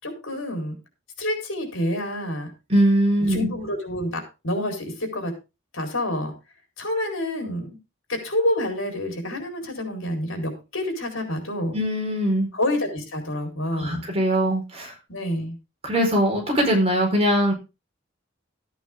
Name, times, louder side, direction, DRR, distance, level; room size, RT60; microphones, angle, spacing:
voice 1, 0.0-0.8 1.2-2.5 3.3-5.4 5.7-6.3 6.8-7.8 8.1-11.8 12.5-14.0 15.1-15.5, left 1 dB, 80° left, 3 dB, 4.3 m, -28 dB
voice 2, 2.7-3.5 11.7-12.5 13.8-14.9 15.8-17.5, equal, 30° right, 0 dB, 4.5 m, -21 dB
13.5 x 9.2 x 3.6 m, 0.28 s
head